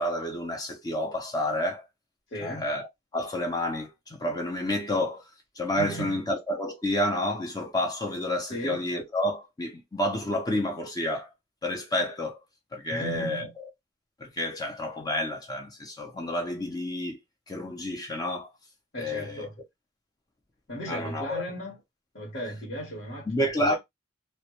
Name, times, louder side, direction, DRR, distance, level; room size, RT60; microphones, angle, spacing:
voice 1, 0.0-1.9 2.4-2.9 3.1-5.3 5.6-11.3 11.6-12.4 12.7-13.5 14.2-17.2 17.5-18.5 19.0-19.5 20.9-21.4 23.3-23.8, left 1 dB, 20° left, 0.5 m, -29 dB
voice 2, 2.3-2.7 5.8-6.2 8.5-8.9 12.9-13.5 18.9-19.6 20.7-21.8 22.1-23.8, right 1 dB, 65° left, 1.0 m, -36 dB
2.1 x 2.1 x 2.8 m
head